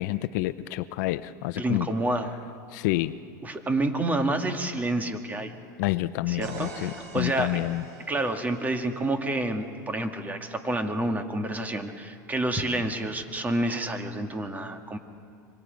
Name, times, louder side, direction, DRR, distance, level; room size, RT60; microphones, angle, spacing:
voice 1, 0.0-1.9 2.7-3.2 5.8-7.8, left 17 dB, 70° left, 14 dB, 0.6 m, -28 dB
voice 2, 1.6-2.3 3.4-5.5 6.3-7.6 8.1-15.0, right 1 dB, 15° right, 6 dB, 1.9 m, -29 dB
sound 1, 6.4-10.2, right 3 dB, 85° right, 6.0 m, -45 dB
26.0 x 24.0 x 5.3 m, 2.3 s
supercardioid pair, 110°, 10 cm